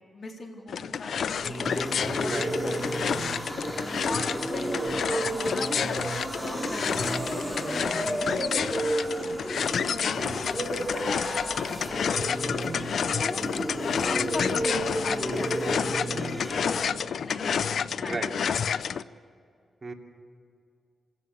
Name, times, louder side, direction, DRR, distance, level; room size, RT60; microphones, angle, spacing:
voice 1, 0.0-3.2 4.0-9.4 9.7-10.1 10.4-12.1 12.6-13.4 13.8-18.3 18.9-19.1, left 3 dB, 55° left, 1 dB, 3.7 m, -41 dB
sound 1, 0.7-19.0, left 7 dB, 75° left, 0.5 m, -30 dB
sound 2, 1.2-16.8, right 1 dB, ahead, 3.2 m, -32 dB
voice 2, 2.2-3.1 4.0-4.2 10.2-10.4 18.0-18.3 19.8-19.9, right 3 dB, 35° right, 1 dB, 2.8 m, -37 dB
27.0 x 17.0 x 6.9 m, 2.4 s
cardioid pair, 80°, 0 cm